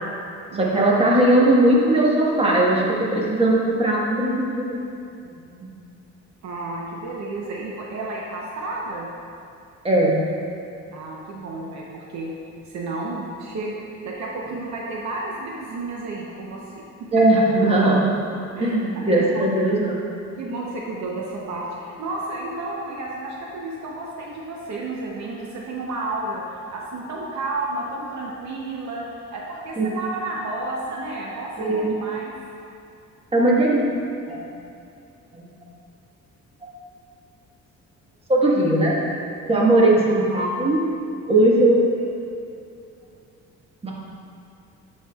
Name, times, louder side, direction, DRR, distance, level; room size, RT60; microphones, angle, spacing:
voice 1, 0.5-2.8 3.1-4.8 5.2-5.4 9.8-10.2 17.1-18.1 18.6-20.0 29.8-29.9 31.6-31.9 33.3-33.9 34.3-34.4 35.3-35.5 38.3-38.9 39.5-40.8 41.3-42.0 43.8-43.9, right 1 dB, 20° right, -4 dB, 1.4 m, -18 dB
voice 2, 6.4-9.1 10.9-12.3 12.7-16.8 17.3-17.4 18.5-19.5 20.4-26.4 26.7-32.3 39.5-39.7, right 2 dB, 65° right, -3 dB, 0.8 m, -32 dB
10.0 x 4.7 x 2.4 m, 2.5 s
cardioid pair, 90°, 30 cm